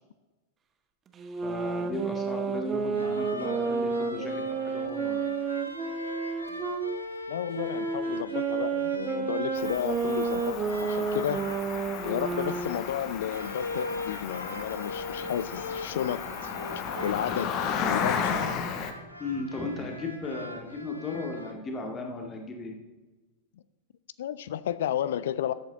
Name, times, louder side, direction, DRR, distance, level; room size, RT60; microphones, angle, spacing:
sound 1, 1.2-6.9 7.5-12.9, right 5 dB, 25° right, 0.9 m, -31 dB
voice 1, 1.4-5.2 19.2-22.7, left 3 dB, 20° left, 3 dB, 2.0 m, -36 dB
sound 2, 2.9-21.5, left 1 dB, 85° left, 1.0 m, -41 dB
voice 2, 7.3-11.4 12.0-16.5 17.0-18.4 24.2-25.5, left 10 dB, 60° left, 17 dB, 0.4 m, -32 dB
Cricket, 9.6-18.9, left 6 dB, 40° left, 1.1 m, -34 dB
13.5 x 8.0 x 3.9 m, 1.2 s
figure-of-eight pair, 90°, 0 cm